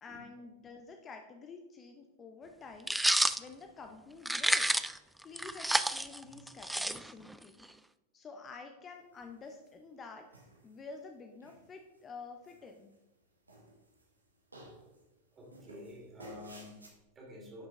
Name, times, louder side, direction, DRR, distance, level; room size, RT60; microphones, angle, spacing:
voice 1, 0.0-3.0 3.4-4.7 5.2-7.6 8.1-10.3 10.6-12.9, left 4 dB, 25° left, 5 dB, 0.7 m, -49 dB
sound 1, 2.9-3.4 4.3-5.0 5.4-7.3, right 1 dB, 5° right, 0.3 m, -29 dB
sound 2, 9.1-9.8 10.3-11.0 11.4-12.0 12.4-13.2 13.5-14.2 14.5-15.0 15.5-16.9, right 1 dB, 80° right, 1.6 m, -54 dB
voice 2, 15.3-17.7, left 1 dB, 20° right, -1 dB, 2.9 m, -50 dB
11.0 x 6.0 x 3.6 m, 1.0 s
figure-of-eight pair, 90°, 0 cm